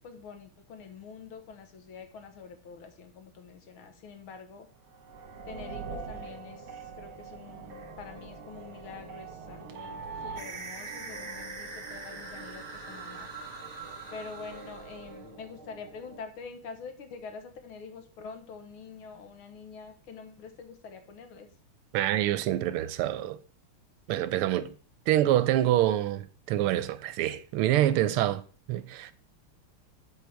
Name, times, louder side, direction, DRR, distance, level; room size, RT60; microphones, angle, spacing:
voice 1, 0.0-4.7 5.5-13.3 14.1-21.5, left 5 dB, 70° left, 2.0 m, -46 dB
sound 1, 4.8-16.2, right 4 dB, 70° right, 1.9 m, -44 dB
sound 2, 10.4-15.3, right 4 dB, 40° right, 0.5 m, -43 dB
voice 2, 21.9-23.4 24.1-24.7 25.1-28.4 28.7-29.1, right 13 dB, 85° right, 1.5 m, -26 dB
13.0 x 4.6 x 3.4 m
omnidirectional pair, 2.4 m